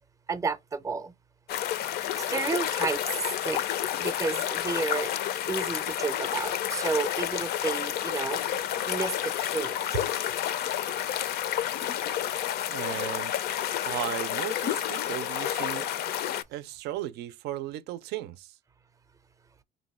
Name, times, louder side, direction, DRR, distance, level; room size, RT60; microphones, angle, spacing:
voice 1, 0.3-1.1 2.3-3.0 3.4-3.6 4.0-5.1 5.5-8.4 8.9-9.8, right 4 dB, 20° right, 0.5 m, -31 dB
Small Creek (Close-Miked), 1.5-16.4, left 11 dB, 70° left, 0.4 m, -30 dB
voice 2, 12.7-13.3 13.9-15.9 16.5-18.5, right 13 dB, 75° right, 0.4 m, -35 dB
3.0 x 2.6 x 4.1 m
cardioid pair, 110°, 17 cm